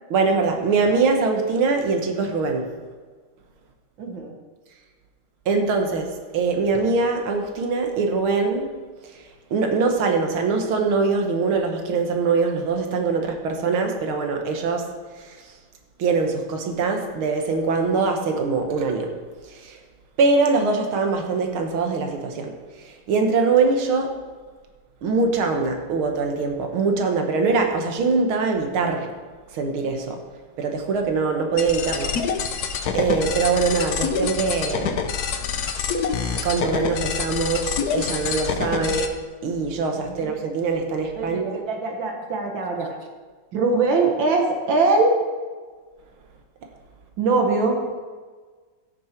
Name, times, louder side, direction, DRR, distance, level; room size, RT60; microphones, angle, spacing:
voice 1, 0.1-2.7 5.5-8.7 9.0-9.2 9.5-14.9 15.2-15.4 16.0-19.1 19.5-19.8 20.2-22.5 22.8-24.2 25.0-29.1 29.5-30.2 30.6-32.2 32.4-32.7 32.9-35.0 36.4-39.1 39.4-41.6, right 4 dB, 85° right, 4 dB, 2.1 m, -23 dB
voice 2, 4.0-4.3 38.6-39.0 40.0-40.3 41.2-43.0 43.5-45.2 47.2-47.8, right 3 dB, 70° right, 2 dB, 1.9 m, -22 dB
sound 1, 31.6-39.1, left 6 dB, 60° left, 1.2 m, -26 dB
16.0 x 6.7 x 4.5 m, 1.4 s
omnidirectional pair, 2.2 m